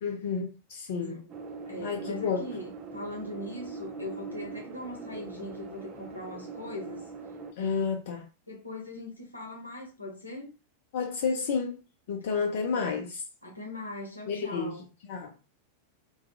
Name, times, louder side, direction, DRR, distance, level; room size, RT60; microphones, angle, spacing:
voice 1, 0.0-1.2 1.8-2.5 7.6-8.2 10.9-11.8 12.1-13.2 14.3-14.7 15.1-15.3, left 5 dB, 55° left, 0.4 m, -30 dB
voice 2, 0.9-1.3 1.7-7.0 7.6-7.8 8.5-10.5 12.7-13.0 13.4-14.8, left 2 dB, 85° left, 0.9 m, -40 dB
sound 1, 1.3-7.5, right 4 dB, 35° right, 0.4 m, -42 dB
2.3 x 2.3 x 2.7 m
figure-of-eight pair, 90°, 0 cm